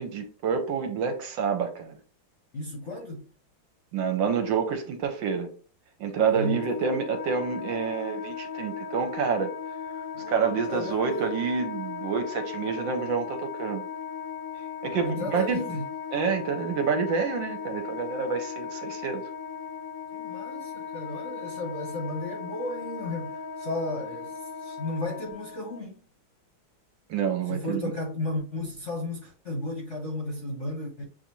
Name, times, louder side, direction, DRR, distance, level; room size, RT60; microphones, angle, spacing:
voice 1, 0.0-1.9 3.9-5.5 6.0-9.5 10.3-13.9 14.8-15.6 16.1-19.2 27.1-27.9, right 6 dB, 70° right, 1.3 m, -28 dB
voice 2, 2.5-3.2 6.3-6.6 10.1-11.4 15.0-15.9 20.1-26.0 27.5-31.0, left 2 dB, 50° left, 0.9 m, -34 dB
Wind instrument woodwind instrument, 6.3-25.8, left 7 dB, 80° left, 0.8 m, -37 dB
6.8 x 2.5 x 3.0 m
omnidirectional pair, 2.3 m